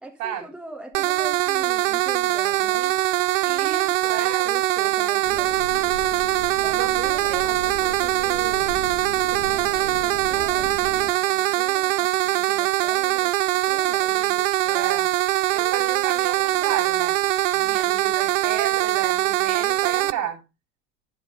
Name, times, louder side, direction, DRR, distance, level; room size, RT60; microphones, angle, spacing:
voice 1, 0.0-2.9 4.4-5.6 6.6-8.7 9.3-13.3 13.7-14.2 17.6-17.9, right 1 dB, ahead, 1.6 m, -42 dB
sound 1, 0.9-20.1, right 16 dB, 75° right, 0.5 m, -22 dB
voice 2, 3.4-4.5 6.8-7.4 14.1-15.1 15.5-17.2 17.5-20.4, right 9 dB, 55° right, 3.6 m, -32 dB
sound 2, 5.2-11.1, equal, 85° left, 2.8 m, -37 dB
10.0 x 6.7 x 3.8 m
figure-of-eight pair, 70°, 38 cm